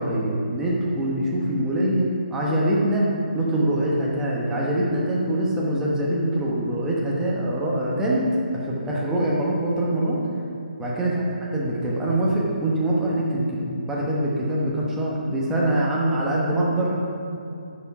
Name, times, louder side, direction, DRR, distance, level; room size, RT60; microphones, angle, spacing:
voice 1, 0.0-8.3 8.5-10.2 10.8-16.9, right 1 dB, 5° right, -5 dB, 1.1 m, -24 dB
9.4 x 7.2 x 4.8 m, 2.6 s
hypercardioid pair, 165°, 5 cm